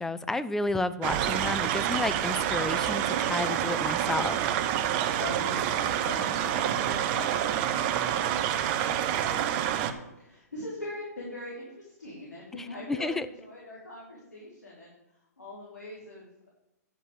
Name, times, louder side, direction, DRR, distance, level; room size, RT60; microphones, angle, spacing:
voice 1, 0.0-4.4 12.5-13.3, left 2 dB, 5° left, 13 dB, 0.4 m, -31 dB
sound 1, 1.0-9.9, right 10 dB, 35° right, 0.8 m, -28 dB
voice 2, 5.2-14.9 15.4-16.5, left 1 dB, 85° left, -5 dB, 3.7 m, -42 dB
9.9 x 5.4 x 7.3 m, 0.86 s
figure-of-eight pair, 125°, 9 cm